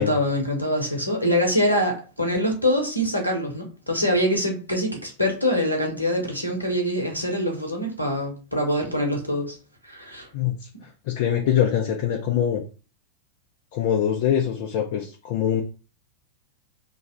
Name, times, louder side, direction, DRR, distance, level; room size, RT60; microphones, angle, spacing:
voice 1, 0.0-9.6 9.8-10.3, equal, 85° left, 1.0 m, -24 dB
voice 2, 10.3-10.7 11.1-12.6 13.7-15.6, left 9 dB, 50° left, 0.6 m, -23 dB
3.1 x 2.4 x 4.2 m
figure-of-eight pair, 90°, 0 cm